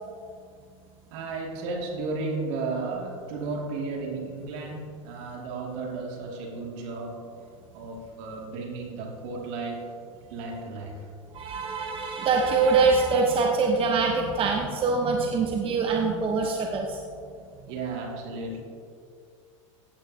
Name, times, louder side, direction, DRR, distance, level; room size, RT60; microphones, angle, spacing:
voice 1, 1.1-9.9 10.3-11.1 17.7-18.6, right 3 dB, 60° right, 0 dB, 2.4 m, -34 dB
voice 2, 11.3-17.0, right 4 dB, 30° right, 1 dB, 1.0 m, -24 dB
15.5 x 8.7 x 2.8 m, 2.3 s
hypercardioid pair, 105°, 17 cm